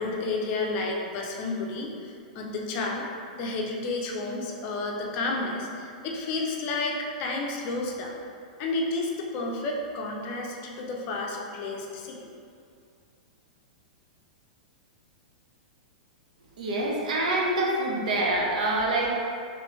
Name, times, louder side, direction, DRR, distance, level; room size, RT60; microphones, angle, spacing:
voice 1, 0.0-3.1 3.3-8.2 8.6-12.3, left 2 dB, 45° left, 0 dB, 0.5 m, -31 dB
voice 2, 16.6-19.1, right 2 dB, 70° right, -2 dB, 0.7 m, -26 dB
3.0 x 3.0 x 3.1 m, 2.3 s
hypercardioid pair, 120°, 4 cm